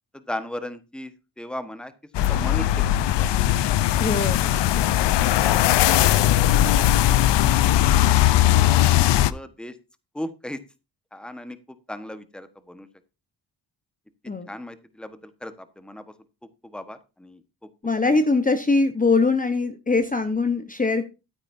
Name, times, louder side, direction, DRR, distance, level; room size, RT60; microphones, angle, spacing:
voice 1, 0.1-1.9 2.3-3.4 4.4-4.6 8.5-8.8 9.2-9.8 10.1-10.6 11.1-11.6 11.9-12.9 14.5-16.0 16.6-17.4, left 1 dB, ahead, 11 dB, 1.2 m, -37 dB
sound 1, 2.1-9.3, left 13 dB, 75° left, 0.7 m, -19 dB
voice 2, 4.0-4.4 14.3-14.5 17.8-21.1, left 3 dB, 20° left, 9 dB, 1.0 m, -22 dB
13.0 x 9.0 x 2.6 m, 0.28 s
cardioid pair, 105°, 42 cm